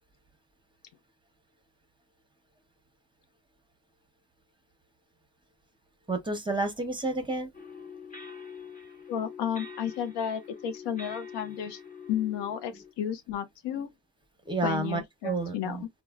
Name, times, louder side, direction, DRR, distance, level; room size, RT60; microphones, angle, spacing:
voice 1, 6.1-7.5 12.7-12.8 14.5-15.8, right 3 dB, 10° right, 0.7 m, -30 dB
sound 1, 7.5-12.9, left 5 dB, 20° left, 0.8 m, -45 dB
voice 2, 9.1-11.8 12.1-13.9 14.6-15.9, left 9 dB, 90° left, 0.7 m, -32 dB
3.1 x 2.1 x 2.3 m
cardioid pair, 100°, 40 cm